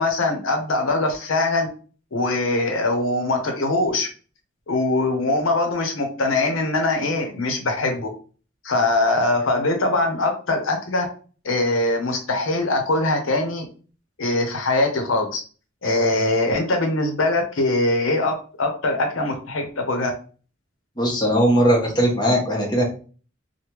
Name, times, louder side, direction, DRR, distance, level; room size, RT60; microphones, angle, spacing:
voice 1, 0.0-1.7 2.1-4.1 4.7-8.1 8.6-11.1 11.4-13.6 14.2-15.4 15.8-20.1, left 2 dB, 90° left, 4 dB, 0.7 m, -22 dB
voice 2, 21.0-22.8, equal, 20° left, -2 dB, 0.9 m, -19 dB
3.3 x 2.1 x 3.0 m, 0.39 s
head